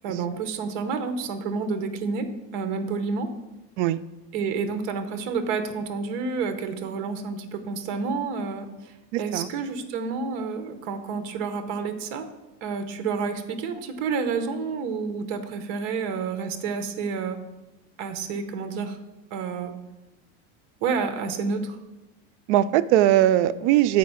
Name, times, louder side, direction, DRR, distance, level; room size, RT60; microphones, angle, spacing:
voice 1, 0.0-3.3 4.3-8.9 9.2-12.3 12.6-17.4 18.0-19.0 19.3-19.7 20.8-21.8, right 5 dB, 55° right, 9 dB, 0.8 m, -29 dB
voice 2, 9.1-9.5 22.5-24.0, right 13 dB, 80° right, 14 dB, 0.5 m, -20 dB
7.5 x 4.5 x 5.6 m, 1.0 s
cardioid pair, 175°, 34 cm